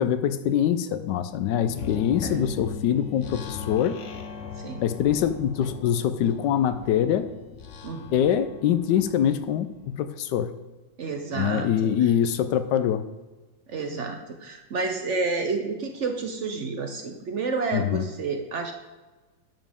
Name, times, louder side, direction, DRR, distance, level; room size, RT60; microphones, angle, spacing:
voice 1, 0.0-4.0 4.8-7.3 8.1-10.5 11.3-13.0 17.7-18.0, left 9 dB, 70° left, 12 dB, 1.1 m, -24 dB
sound 1, 1.6-10.0, left 6 dB, 90° left, 0.6 m, -39 dB
voice 2, 7.8-8.2 11.0-11.9 13.7-18.7, right 4 dB, 60° right, 4 dB, 0.7 m, -30 dB
11.0 x 7.3 x 3.6 m, 1.2 s
omnidirectional pair, 2.2 m